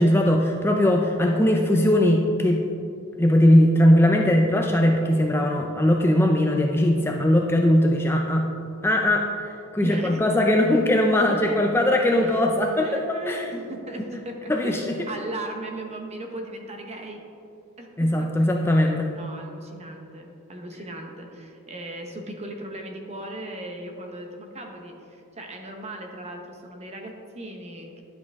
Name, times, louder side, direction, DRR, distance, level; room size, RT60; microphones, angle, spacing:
voice 1, 0.0-2.6 3.2-8.5 8.8-13.4 14.5-14.8 18.0-19.1, left 1 dB, 10° left, 2 dB, 0.4 m, -20 dB
voice 2, 9.8-10.7 11.3-11.6 12.2-12.5 12.8-14.8 15.1-17.2 17.8-18.7 19.1-28.0, right 1 dB, 30° right, 3 dB, 1.0 m, -37 dB
10.5 x 7.4 x 3.5 m, 2.6 s
head